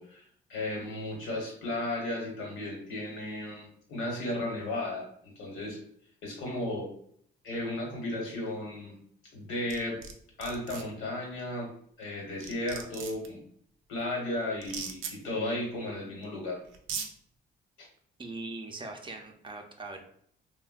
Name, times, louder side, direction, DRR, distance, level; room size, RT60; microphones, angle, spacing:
voice 1, 0.0-5.8 6.2-6.9 7.4-9.0 9.3-10.0 10.4-11.7 12.0-13.4 13.9-16.6 17.8-17.9, left 1 dB, 85° left, -1 dB, 1.1 m, -35 dB
sound 1, 9.7-10.1 10.4-10.8 12.0-12.1 12.4-13.3 14.6-15.1 16.2-16.3 16.7-17.1, right 6 dB, 85° right, 0.5 m, -37 dB
voice 2, 18.2-20.0, right 2 dB, 25° right, 3 dB, 0.5 m, -41 dB
3.3 x 2.1 x 2.3 m, 0.64 s
cardioid pair, 90°, 20 cm